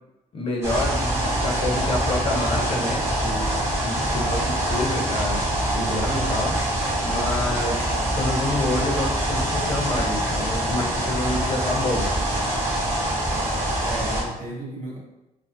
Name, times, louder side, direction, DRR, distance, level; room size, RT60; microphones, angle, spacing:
voice 1, 0.3-4.4 4.7-6.5 7.0-7.8 8.1-12.1, left 2 dB, 40° left, -1 dB, 0.6 m, -28 dB
sound 1, 0.6-14.2, right 1 dB, 20° right, 0.6 m, -24 dB
voice 2, 4.1-4.4 13.8-15.0, right 2 dB, 65° right, -2 dB, 0.8 m, -35 dB
2.5 x 2.4 x 2.5 m, 0.93 s
cardioid pair, 165°, 14 cm